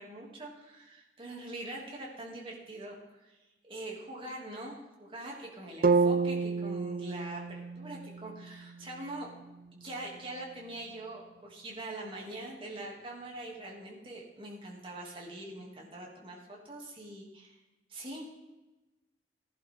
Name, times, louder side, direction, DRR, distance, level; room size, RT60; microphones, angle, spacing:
voice 1, 0.0-3.4 3.6-9.3 9.8-17.6 17.9-18.3, right 1 dB, 30° right, -2 dB, 2.8 m, -43 dB
sound 1, 5.8-9.9, right 4 dB, 55° right, 0.5 m, -31 dB
16.0 x 11.0 x 3.8 m, 1.1 s
head